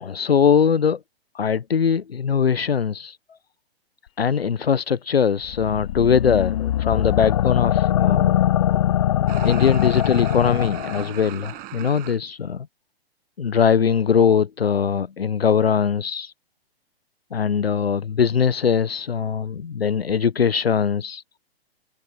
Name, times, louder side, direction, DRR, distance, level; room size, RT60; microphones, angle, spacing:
voice 1, 0.0-1.0 1.3-3.2 4.2-8.4 9.4-12.7 13.4-16.3 17.3-21.2, left 7 dB, 70° left, 0.9 m, -21 dB
sound 1, 5.5-11.1, left 12 dB, 35° left, 0.4 m, -22 dB
sound 2, 9.3-12.2, right 21 dB, 30° right, 6.3 m, -38 dB
figure-of-eight pair, 115°, 31 cm